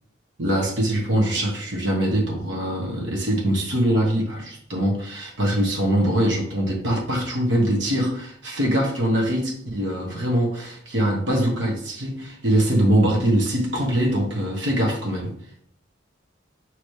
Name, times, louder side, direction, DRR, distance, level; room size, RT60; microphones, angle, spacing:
voice 1, 0.4-15.3, right 1 dB, 85° right, 0 dB, 1.1 m, -23 dB
5.3 x 3.1 x 3.2 m, 0.64 s
head